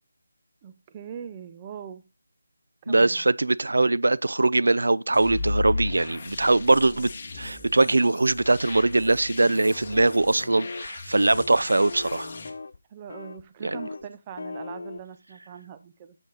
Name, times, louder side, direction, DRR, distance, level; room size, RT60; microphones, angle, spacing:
voice 1, 0.6-2.0 2.8-3.2 12.9-16.2, right 8 dB, 15° right, 0.4 m, -41 dB
voice 2, 2.9-12.3 13.6-13.8, right 2 dB, 85° right, 0.3 m, -22 dB
sound 1, 5.1-12.5, left 2 dB, 30° left, 1.3 m, -35 dB
sound 2, 9.9-10.2 10.6-10.9 11.2-11.5 11.8-12.8 13.1-13.4 13.7-14.0 14.4-15.0, left 3 dB, 50° left, 0.4 m, -38 dB
8.3 x 7.0 x 3.8 m
figure-of-eight pair, 175°, 0 cm